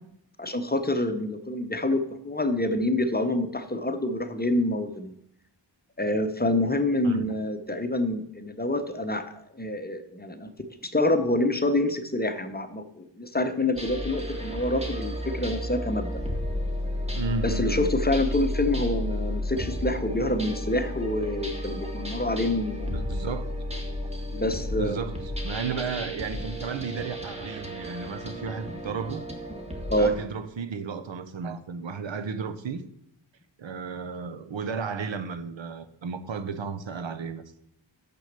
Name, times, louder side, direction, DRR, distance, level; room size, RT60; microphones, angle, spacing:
voice 1, 0.4-2.0 2.2-5.1 6.0-9.2 9.5-10.5 10.8-16.2 17.4-22.9 24.3-25.0 29.9-30.1, left 1 dB, 20° left, 0.8 m, -27 dB
sound 1, 13.7-30.3, left 1 dB, 15° right, 1.6 m, -32 dB
voice 2, 17.1-17.9 22.9-23.5 24.8-29.2 30.0-32.8 33.6-37.4, right 5 dB, 80° right, 0.8 m, -33 dB
6.3 x 6.1 x 6.7 m
wide cardioid pair, 75°, 45 cm